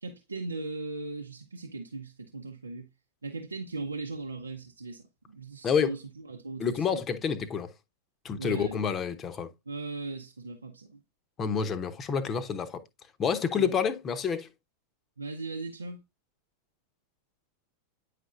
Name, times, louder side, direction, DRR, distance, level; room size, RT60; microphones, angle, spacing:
voice 1, 0.0-2.9 3.2-6.0 6.3-7.0 8.4-8.9 9.7-11.0 13.5-13.7 15.2-16.0, right 3 dB, 80° right, 0.7 m, -38 dB
voice 2, 5.6-6.0 6.6-7.7 8.2-9.5 11.4-12.8 13.2-14.5, left 7 dB, 25° left, 0.9 m, -28 dB
9.4 x 5.1 x 2.4 m
figure-of-eight pair, 90°, 0 cm